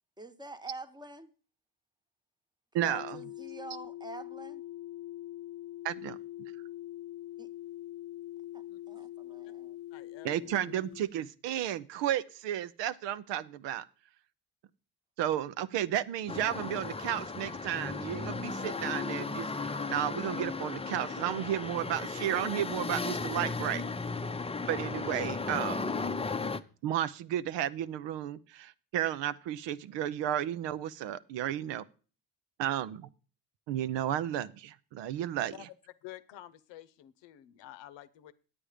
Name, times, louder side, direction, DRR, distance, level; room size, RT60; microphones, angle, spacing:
voice 1, 0.2-1.3 2.8-4.6 7.4-7.5 8.5-9.8, right 2 dB, 10° right, 9 dB, 1.0 m, -46 dB
voice 2, 2.7-3.2 5.8-6.2 10.2-13.8 15.2-23.8 24.7-25.9 26.8-31.8 32.6-33.0 33.7-35.5, right 11 dB, 80° right, 14 dB, 0.7 m, -33 dB
sound 1, 2.8-11.0, left 14 dB, 60° left, 0.5 m, -43 dB
voice 3, 8.7-9.1 9.9-10.6 35.5-35.7 36.0-38.3, left 13 dB, 80° left, 14 dB, 0.8 m, -50 dB
sound 2, 16.3-26.6, left 4 dB, 15° left, 0.6 m, -35 dB
8.8 x 8.7 x 4.9 m, 0.37 s
supercardioid pair, 65°, 43 cm